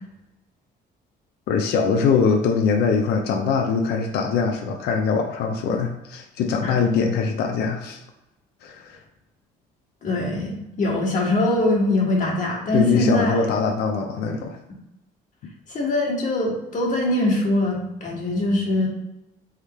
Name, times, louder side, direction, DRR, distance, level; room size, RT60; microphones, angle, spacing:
voice 1, 1.5-8.0 8.6-9.0 12.7-14.6, left 5 dB, 75° left, 3 dB, 0.6 m, -22 dB
voice 2, 10.0-13.4 15.7-18.9, left 1 dB, 50° left, -2 dB, 1.6 m, -22 dB
3.6 x 3.3 x 4.2 m, 0.92 s
cardioid pair, 110°, 17 cm